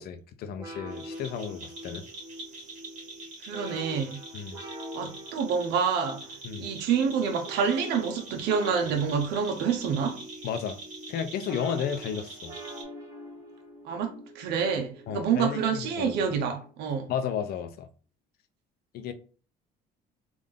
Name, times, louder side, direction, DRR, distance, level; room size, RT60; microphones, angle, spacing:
voice 1, 0.0-2.0 4.3-4.6 6.4-6.7 10.4-10.8 11.1-12.5 15.1-16.3 17.1-17.9 18.9-19.1, left 8 dB, 65° left, 0.6 m, -33 dB
sound 1, 0.6-16.8, right 1 dB, 20° right, 1.2 m, -45 dB
sound 2, 0.9-12.8, right 2 dB, 50° right, 1.7 m, -45 dB
voice 2, 3.4-4.2 4.9-6.3 6.6-10.2 13.8-17.1, right 6 dB, 80° right, 0.8 m, -27 dB
3.6 x 2.6 x 3.5 m
cardioid pair, 110°, 17 cm